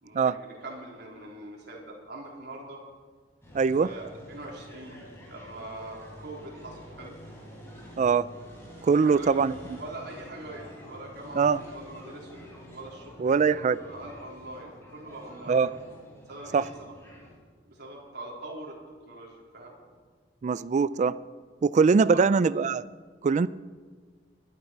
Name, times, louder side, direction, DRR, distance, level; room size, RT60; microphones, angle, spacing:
voice 1, 0.0-2.8 3.8-5.0 5.3-7.2 8.9-9.3 9.8-12.4 12.7-15.6 16.3-16.7 17.7-18.8 19.1-19.8 22.1-22.2, right 1 dB, 65° right, -3 dB, 3.7 m, -42 dB
sound 1, 3.4-17.4, equal, 15° left, 4.0 m, -48 dB
voice 2, 3.5-3.9 8.0-8.3 8.8-9.8 11.3-11.6 13.2-13.8 15.5-15.7 16.5-16.7 20.4-21.2 21.6-22.9 23.2-23.5, right 5 dB, 40° right, 17 dB, 0.3 m, -22 dB
21.5 x 11.5 x 4.6 m, 1.5 s
head